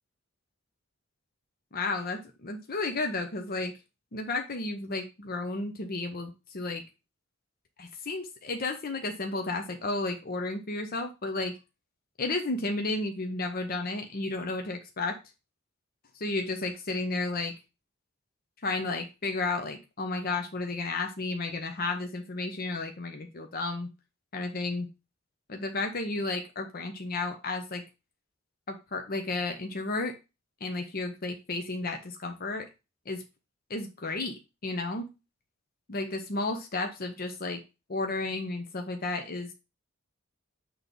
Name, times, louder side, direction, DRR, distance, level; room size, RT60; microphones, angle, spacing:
voice 1, 1.7-3.7 4.1-6.8 7.8-11.5 12.2-15.2 16.2-17.5 18.6-23.9 24.3-24.9 25.5-27.8 28.7-30.1 30.6-32.7 33.1-33.2 33.7-35.1 35.9-37.6 37.9-39.5, left 3 dB, 50° left, 4 dB, 0.8 m, -32 dB
6.1 x 3.2 x 5.2 m, 0.27 s
head